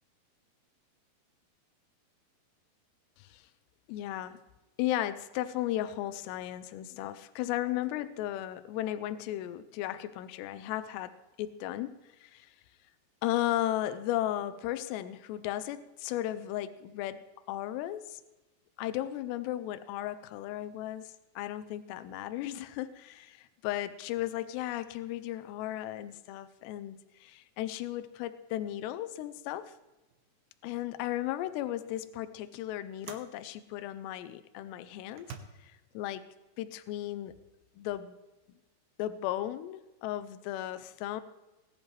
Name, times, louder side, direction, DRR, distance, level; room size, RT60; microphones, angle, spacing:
voice 1, 3.9-4.4 4.8-11.1 11.4-11.9 12.2-12.5 13.2-17.2 17.5-18.2 18.8-29.7 30.6-35.3 35.6-36.2 36.6-37.3 37.8-38.2 39.0-41.2, left 13 dB, 90° left, 12 dB, 2.8 m, -35 dB
sound 1, 30.1-30.3 30.7-31.0 31.9-32.1 33.0-33.4 34.2-34.3 35.1-35.4, right 7 dB, 70° right, 2.4 m, -47 dB
19.5 x 11.0 x 3.2 m, 1.1 s
omnidirectional pair, 4.8 m